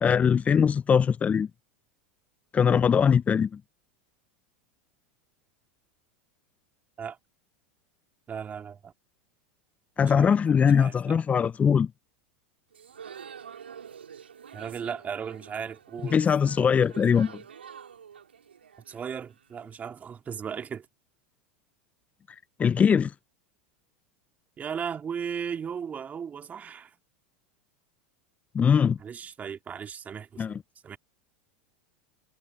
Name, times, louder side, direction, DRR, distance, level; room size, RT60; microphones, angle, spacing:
voice 1, 0.0-1.5 2.5-3.6 10.0-11.9 16.1-17.3 22.6-23.1 28.5-29.0 30.4-30.6, left 7 dB, 25° left, 0.7 m, -21 dB
voice 2, 8.3-8.9 10.0-10.4 10.7-11.2 14.5-16.2 18.9-20.9 24.6-27.0 29.0-30.6 30.8-31.0, right 7 dB, 25° right, 2.7 m, -36 dB
sound 1, 12.7-19.7, right 7 dB, 85° right, 5.1 m, -47 dB
hypercardioid pair, 90°, 6 cm